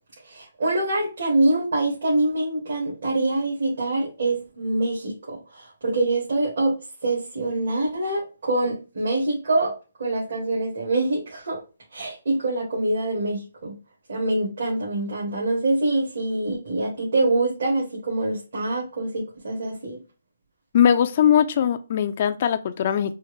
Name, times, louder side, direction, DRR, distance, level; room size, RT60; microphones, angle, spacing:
voice 1, 0.2-6.8 7.0-9.7 10.0-11.6 11.9-13.8 14.1-20.0, right 2 dB, 65° right, 2.0 m, -25 dB
voice 2, 20.7-23.1, left 9 dB, 40° left, 0.4 m, -20 dB
4.4 x 2.1 x 3.2 m
hypercardioid pair, 165°, 0 cm